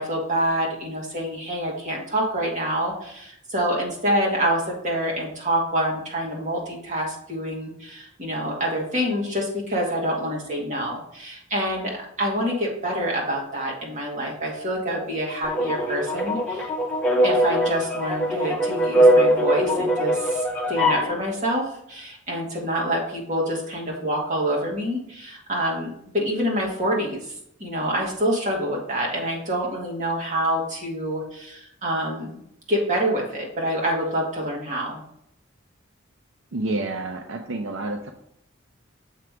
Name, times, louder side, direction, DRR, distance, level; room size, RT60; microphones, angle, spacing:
voice 1, 0.0-11.9 12.2-16.7 17.2-27.3 27.6-32.4 32.7-35.0, equal, 40° right, -2 dB, 2.1 m, -26 dB
sound 1, 15.4-21.1, equal, 10° left, 1.4 m, -21 dB
voice 2, 36.5-38.1, right 2 dB, 75° right, 4 dB, 0.6 m, -29 dB
7.5 x 3.3 x 4.9 m, 0.75 s
head